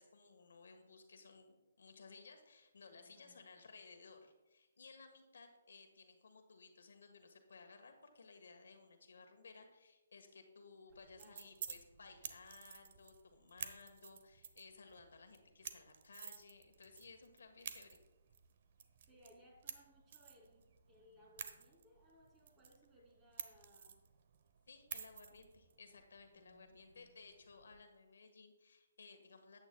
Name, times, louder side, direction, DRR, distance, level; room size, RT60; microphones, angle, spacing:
voice 1, 0.0-18.0 24.7-29.6, left 4 dB, 70° left, 5 dB, 1.3 m, -59 dB
voice 2, 2.9-3.4 11.2-11.5 19.1-24.0 26.3-27.1, equal, 20° right, -1 dB, 2.7 m, -66 dB
sound 1, 10.9-27.8, right 8 dB, 50° right, 0.7 m, -53 dB
13.0 x 8.8 x 2.2 m, 1.1 s
hypercardioid pair, 145°, 0 cm